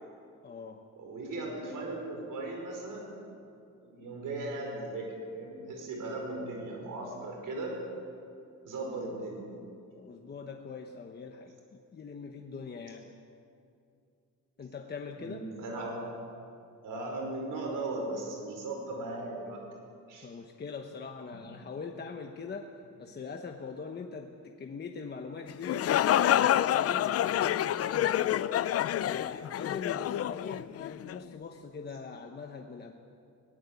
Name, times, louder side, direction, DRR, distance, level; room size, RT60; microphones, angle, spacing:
voice 1, 0.4-0.8 10.0-13.1 14.6-15.4 20.2-22.7 23.0-28.5 29.0-32.9, left 5 dB, 35° left, 3 dB, 1.0 m, -42 dB
voice 2, 1.0-3.1 3.8-7.8 8.6-9.4 15.2-16.0 16.8-19.6 20.1-20.3, right 2 dB, 85° right, 1 dB, 5.0 m, -37 dB
sound 1, 25.5-31.2, left 11 dB, 50° left, 0.4 m, -28 dB
22.0 x 18.0 x 8.4 m, 2.6 s
wide cardioid pair, 175°, 31 cm